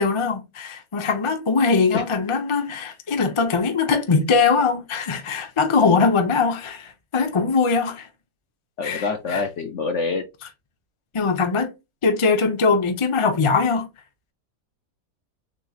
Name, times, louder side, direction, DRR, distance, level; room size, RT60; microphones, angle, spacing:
voice 1, 0.0-8.1 8.8-9.4 11.1-11.7 12.0-13.9, left 4 dB, 35° left, 0.5 m, -21 dB
voice 2, 8.8-10.2, left 4 dB, 60° left, 0.8 m, -26 dB
6.5 x 3.1 x 2.4 m
omnidirectional pair, 1.8 m